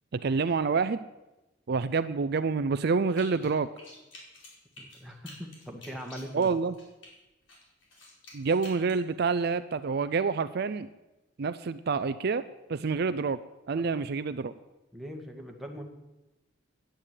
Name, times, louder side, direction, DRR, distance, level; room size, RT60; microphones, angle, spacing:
voice 1, 0.1-1.0 1.7-3.7 6.3-6.7 8.3-10.9 11.4-12.4 12.7-13.4 13.7-14.5, right 4 dB, 55° right, 12 dB, 0.5 m, -27 dB
sound 1, 3.1-3.5 3.8-7.1 7.5-9.0, left 2 dB, 75° left, 4.8 m, -49 dB
voice 2, 4.8-6.5 13.7-13.9 14.9-15.8, equal, ahead, 1 dB, 1.8 m, -41 dB
10.0 x 9.9 x 9.0 m, 1.0 s
head